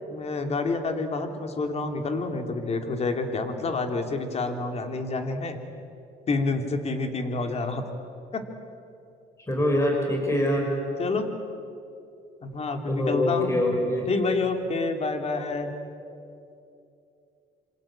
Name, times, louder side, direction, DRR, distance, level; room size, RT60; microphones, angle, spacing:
voice 1, 0.1-5.6 6.3-7.8 8.3-8.4 11.0-11.3 12.4-13.6 14.1-15.7, left 3 dB, 40° left, 6 dB, 3.0 m, -28 dB
voice 2, 9.5-10.7 12.9-14.1, left 1 dB, 15° left, 1 dB, 5.6 m, -24 dB
26.5 x 25.0 x 8.8 m, 2.6 s
cardioid pair, 110°, 17 cm